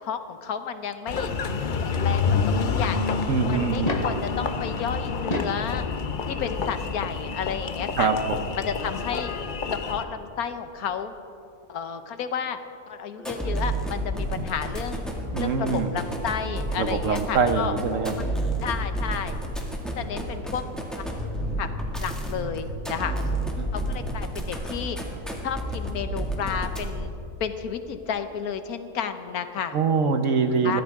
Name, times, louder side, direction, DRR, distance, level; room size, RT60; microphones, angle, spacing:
voice 1, 0.0-1.3 1.8-3.1 3.5-5.8 6.3-8.1 8.6-9.3 9.7-11.2 11.7-12.6 12.9-15.0 15.4-17.7 18.6-19.4 20.0-20.6 20.9-21.0 21.6-21.7 22.0-23.1 23.7-25.0 25.4-27.1 27.4-29.8 30.5-30.8, left 7 dB, 75° left, 9 dB, 1.3 m, -32 dB
Engine, 1.1-10.0, left 5 dB, 45° left, 0.7 m, -28 dB
voice 2, 3.3-4.0 8.0-8.4 14.4-14.5 15.3-15.9 16.8-18.2 23.6-23.7 29.7-30.8, right 5 dB, 60° right, 8 dB, 1.2 m, -24 dB
sound 1, 3.8-4.3 5.1-5.7 7.0-7.1 8.9-9.0 9.2-9.3, left 2 dB, 30° left, 1.0 m, -30 dB
sound 2, 13.2-27.2, right 1 dB, ahead, 1.9 m, -31 dB
22.0 x 16.0 x 3.6 m, 2.7 s
omnidirectional pair, 1.6 m